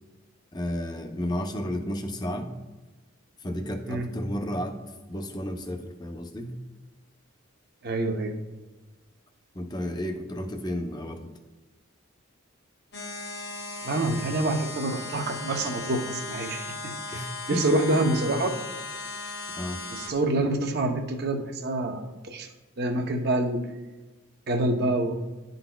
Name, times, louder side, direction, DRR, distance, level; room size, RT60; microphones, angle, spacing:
voice 1, 0.5-2.5 3.4-4.8 5.1-6.5 9.5-11.3 17.1-17.6 19.6-19.8, equal, 20° left, 5 dB, 0.5 m, -32 dB
voice 2, 7.8-8.4 13.8-17.2 17.5-18.6 19.9-22.5 22.8-23.6 24.5-25.1, right 2 dB, 50° right, 4 dB, 0.6 m, -27 dB
sound 1, 12.9-20.1, left 3 dB, 50° left, 0.8 m, -37 dB
11.5 x 3.9 x 2.2 m, 1.2 s
head